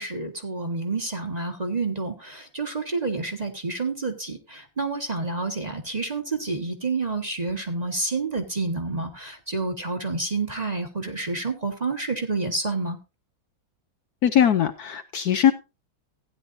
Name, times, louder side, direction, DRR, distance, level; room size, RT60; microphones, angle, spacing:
voice 1, 0.0-13.0, right 3 dB, 25° right, 4 dB, 1.4 m, -29 dB
voice 2, 14.2-15.5, left 9 dB, 65° left, 9 dB, 1.1 m, -20 dB
16.0 x 10.0 x 2.6 m, 0.29 s
omnidirectional pair, 2.0 m